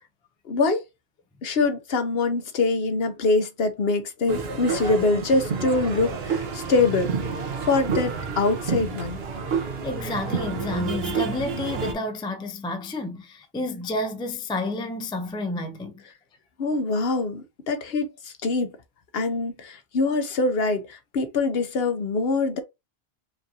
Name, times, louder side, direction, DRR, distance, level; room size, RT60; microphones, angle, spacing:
voice 1, 0.4-0.8 1.4-7.1 7.7-9.2 16.6-18.7 19.1-22.6, left 3 dB, 70° left, 1.0 m, -24 dB
sound 1, 4.3-11.9, right 5 dB, 70° right, 1.1 m, -29 dB
voice 2, 9.5-16.0, left 2 dB, 10° left, 0.3 m, -30 dB
5.0 x 2.6 x 2.7 m
omnidirectional pair, 1.1 m